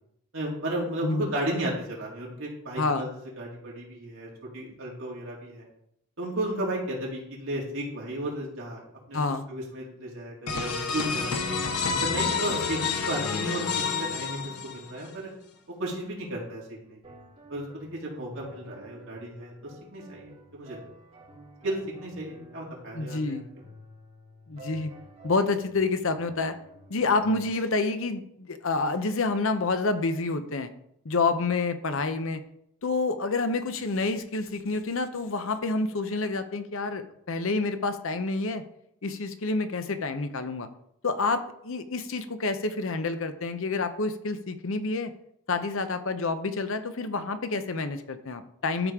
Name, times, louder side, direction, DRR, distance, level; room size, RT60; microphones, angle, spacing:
voice 1, 0.3-3.1 3.4-5.6 6.2-8.8 9.1-9.2 9.5-11.5 12.0-12.8 13.1-15.3 15.8-17.0 17.5-20.8 21.6-23.4, right 1 dB, 60° right, -4 dB, 3.2 m, -34 dB
voice 2, 2.8-3.1 9.1-9.5 22.9-23.5 24.5-24.9 25.2-26.6 26.9-30.7 31.0-32.4 32.8-38.6 39.0-40.7 41.0-45.1 45.5-48.9, left 3 dB, 60° left, 9 dB, 0.7 m, -28 dB
sound 1, 10.5-15.1, left 5 dB, 90° left, 1.0 m, -29 dB
sound 2, 17.0-27.5, equal, 25° right, 4.0 m, -51 dB
13.0 x 5.1 x 3.6 m, 0.75 s
head